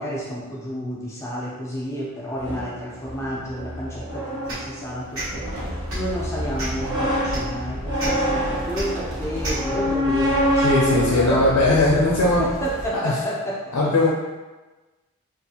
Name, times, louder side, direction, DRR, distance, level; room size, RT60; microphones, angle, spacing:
voice 1, 0.0-13.9, equal, 10° left, -5 dB, 0.4 m, -30 dB
sound 1, 2.4-12.3, equal, 20° right, 0.7 m, -27 dB
sound 2, 4.5-4.7 5.1-5.3 5.8-6.1 6.6-6.8 7.3-7.4 8.0-8.1 8.7-8.8 9.4-9.6, right 1 dB, 65° right, 1.2 m, -29 dB
sound 3, 5.3-12.9, equal, 80° right, 0.7 m, -34 dB
voice 2, 10.6-12.4 12.9-13.2 13.7-14.1, left 2 dB, 85° left, -4 dB, 0.5 m, -19 dB
2.7 x 2.4 x 2.7 m, 1.2 s
head